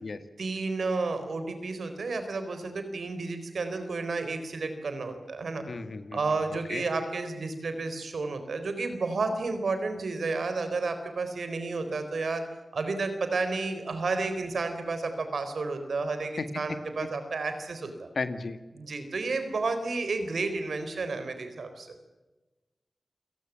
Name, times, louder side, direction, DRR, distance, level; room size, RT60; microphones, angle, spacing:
voice 1, 0.4-5.6 6.1-12.4 12.7-18.1 18.7-21.9, right 3 dB, 85° right, 8 dB, 4.1 m, -31 dB
voice 2, 5.7-6.8 16.4-16.5 18.2-18.6, left 4 dB, 75° left, 10 dB, 1.9 m, -35 dB
28.0 x 19.0 x 7.4 m, 1.1 s
cardioid pair, 40°, 0 cm